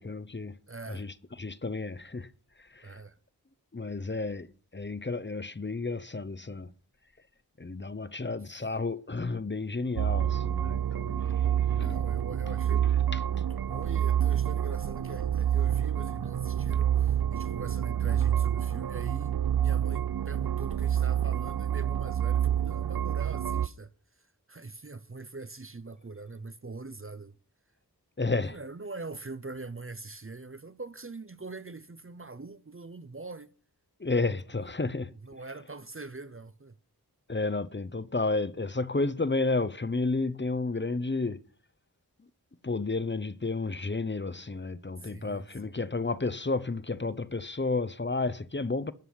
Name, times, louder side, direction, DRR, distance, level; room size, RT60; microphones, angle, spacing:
voice 1, 0.0-0.6 0.9-2.3 2.6-3.0 3.7-4.5 4.7-6.7 7.6-11.4 11.7-12.0 28.2-28.6 34.0-35.1 37.3-41.4 42.6-48.9, left 3 dB, 30° left, 0.8 m, -31 dB
voice 2, 0.7-1.1 2.8-3.2 11.7-27.4 28.4-33.5 35.2-36.8 45.0-45.8, right 3 dB, 35° right, 0.8 m, -43 dB
sound 1, 10.0-23.7, right 10 dB, 70° right, 0.6 m, -28 dB
13.5 x 5.5 x 9.4 m
wide cardioid pair, 40°, 38 cm